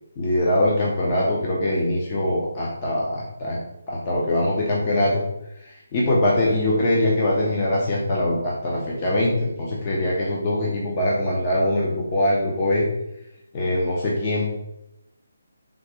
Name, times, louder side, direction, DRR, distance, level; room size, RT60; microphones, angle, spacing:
voice 1, 0.2-3.6 3.9-5.2 5.6-12.8 13.5-14.5, left 1 dB, 20° left, -4 dB, 0.5 m, -22 dB
3.7 x 2.8 x 4.7 m, 0.86 s
hypercardioid pair, 175°, 0 cm